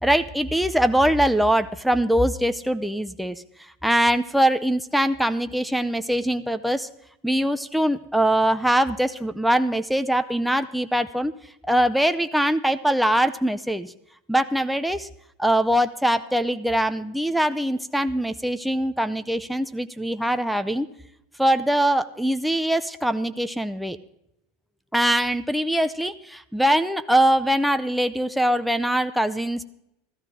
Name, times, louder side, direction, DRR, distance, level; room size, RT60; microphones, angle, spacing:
voice 1, 0.0-6.9 7.2-11.3 11.6-13.9 14.3-15.1 15.4-20.9 21.4-24.0 24.9-29.6, right 1 dB, ahead, 8 dB, 0.6 m, -22 dB
14.5 x 14.5 x 3.8 m, 0.79 s
hypercardioid pair, 85°, 0 cm